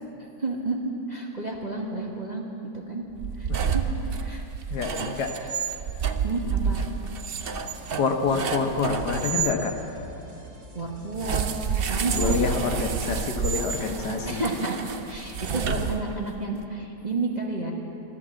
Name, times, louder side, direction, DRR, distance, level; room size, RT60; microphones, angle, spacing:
voice 1, 0.4-2.4 2.7-3.0 3.4-3.8 4.2-4.4 6.2-6.8 10.7-11.5 11.9-12.4 14.2-17.7, right 2 dB, 25° right, -2 dB, 1.3 m, -30 dB
sound 1, 3.1-9.6 11.1-16.4, right 7 dB, 70° right, 0.5 m, -29 dB
voice 2, 4.7-5.6 7.9-9.7 12.1-14.4, left 5 dB, 70° left, 4 dB, 1.6 m, -27 dB
sound 2, 7.3-14.0, equal, 45° right, 2.4 m, -45 dB
14.0 x 11.5 x 7.6 m, 2.9 s
omnidirectional pair, 1.9 m